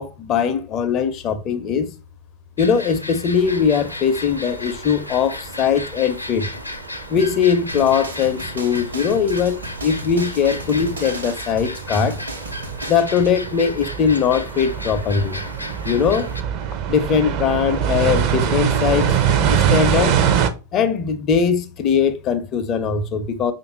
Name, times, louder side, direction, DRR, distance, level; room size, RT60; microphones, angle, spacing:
voice 1, 0.0-1.9 2.6-6.5 7.1-12.2 12.9-15.4 15.8-16.3 16.9-19.2 19.5-20.2 20.7-23.5, left 6 dB, 35° left, 0.5 m, -20 dB
sound 1, 2.6-16.4, left 1 dB, 90° left, 0.4 m, -35 dB
sound 2, 3.4-20.5, right 8 dB, 40° right, 0.5 m, -25 dB
sound 3, 7.7-13.3, right 2 dB, 80° right, 1.0 m, -35 dB
5.0 x 2.5 x 3.0 m
figure-of-eight pair, 90°, 0 cm